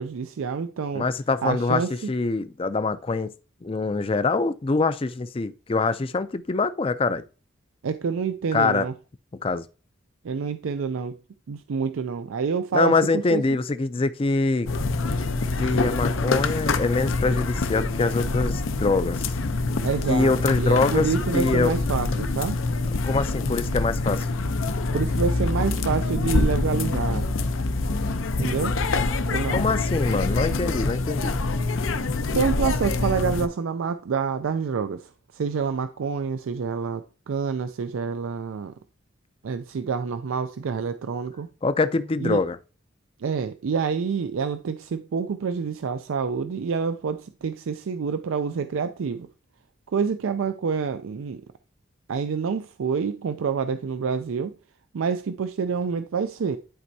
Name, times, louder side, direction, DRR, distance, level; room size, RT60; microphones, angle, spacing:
voice 1, 0.0-1.0 1.4-1.9 7.8-8.9 10.2-11.2 11.5-13.4 19.8-22.6 24.9-27.3 28.4-28.8 29.3-29.6 32.3-38.7 39.4-41.5 42.2-42.4 43.2-49.3 49.9-51.4 52.1-54.5 54.9-56.6, right 6 dB, 85° right, 0.4 m, -27 dB
voice 2, 0.9-1.8 2.1-3.3 3.6-7.2 8.5-8.9 9.4-9.7 12.7-14.7 15.6-19.3 20.1-21.1 21.3-21.7 23.0-24.3 29.5-31.4 41.6-42.6, left 3 dB, 25° left, 0.4 m, -24 dB
sound 1, 14.7-33.5, left 3 dB, 80° left, 0.6 m, -25 dB
11.0 x 4.4 x 2.7 m
head